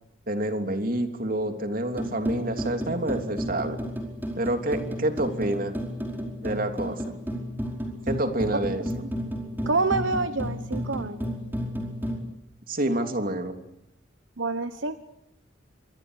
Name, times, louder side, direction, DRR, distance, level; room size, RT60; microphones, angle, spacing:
voice 1, 0.3-3.8 4.4-5.7 6.4-7.1 8.1-9.0 12.7-13.6, right 1 dB, 50° right, 6 dB, 3.2 m, -28 dB
sound 1, 1.9-12.2, equal, 10° right, 4.9 m, -32 dB
voice 2, 9.7-11.4 14.4-15.0, right 3 dB, 80° right, 11 dB, 1.2 m, -27 dB
26.5 x 23.5 x 8.2 m, 0.78 s
head